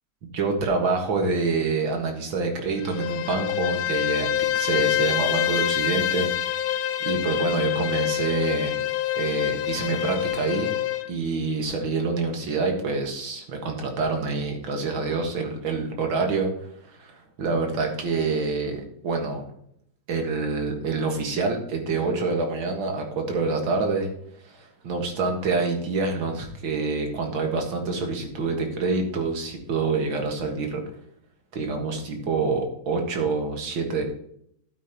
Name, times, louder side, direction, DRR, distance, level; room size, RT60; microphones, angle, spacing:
voice 1, 0.3-6.7 7.0-8.8 9.2-10.7 11.1-16.5 17.0-19.4 20.1-24.1 24.8-30.8 31.5-34.0, right 4 dB, 75° right, 3 dB, 2.4 m, -26 dB
Bowed string instrument, 2.8-11.1, left 12 dB, 75° left, 0.8 m, -26 dB
12.0 x 8.6 x 3.0 m, 0.70 s
omnidirectional pair, 2.2 m